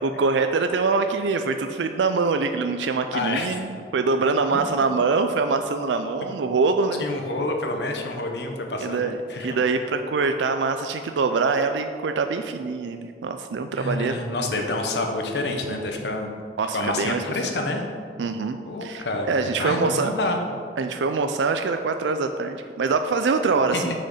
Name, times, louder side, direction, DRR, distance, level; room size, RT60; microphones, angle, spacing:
voice 1, 0.0-7.0 8.8-14.2 16.6-17.2 18.2-20.1 20.8-23.9, right 4 dB, 85° right, 7 dB, 0.4 m, -24 dB
voice 2, 3.1-3.5 4.5-4.6 7.0-9.6 13.8-16.3 16.7-17.8 18.6-20.4 23.7-23.9, left 2 dB, 75° left, 3 dB, 1.1 m, -28 dB
6.4 x 6.4 x 5.6 m, 2.2 s
head